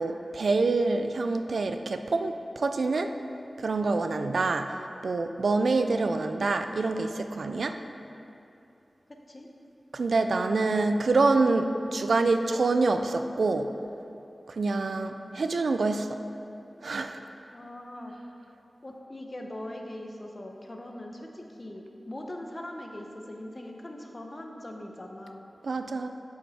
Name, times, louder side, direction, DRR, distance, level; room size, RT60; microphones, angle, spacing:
voice 1, 0.0-3.2 3.6-4.8 5.0-7.8 9.9-13.7 14.5-16.1 16.8-17.2 25.6-26.1, right 3 dB, 80° right, 7 dB, 0.3 m, -26 dB
voice 2, 9.1-9.5 17.5-18.1 18.8-25.4, left 1 dB, 40° left, 2 dB, 0.9 m, -41 dB
7.7 x 5.9 x 4.2 m, 2.8 s
cardioid pair, 50°, 0 cm